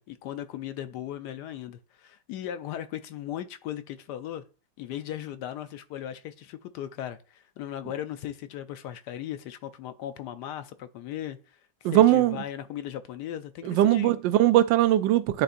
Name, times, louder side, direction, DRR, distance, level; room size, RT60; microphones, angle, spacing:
voice 1, 0.0-4.4 4.8-11.6 11.9-14.2, left 11 dB, 75° left, 1.0 m, -37 dB
voice 2, 11.8-12.4 13.6-15.4, right 13 dB, 80° right, 1.3 m, -20 dB
10.0 x 4.0 x 2.5 m
omnidirectional pair, 2.0 m